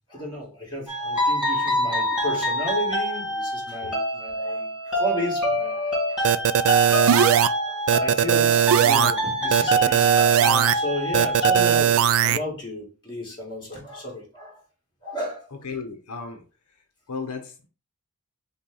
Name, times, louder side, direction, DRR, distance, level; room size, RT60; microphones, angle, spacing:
voice 1, 0.1-6.8 7.6-14.6 15.0-15.5, equal, 20° left, 2.2 m, -33 dB
sound 1, 0.9-11.8, right 1 dB, 5° right, 2.3 m, -25 dB
sound 2, 6.2-7.5 7.9-9.1 9.5-10.7 11.1-12.4, right 9 dB, 65° right, 0.3 m, -19 dB
voice 2, 15.5-16.4 17.1-17.7, left 5 dB, 80° left, 0.8 m, -35 dB
5.6 x 2.3 x 3.8 m
head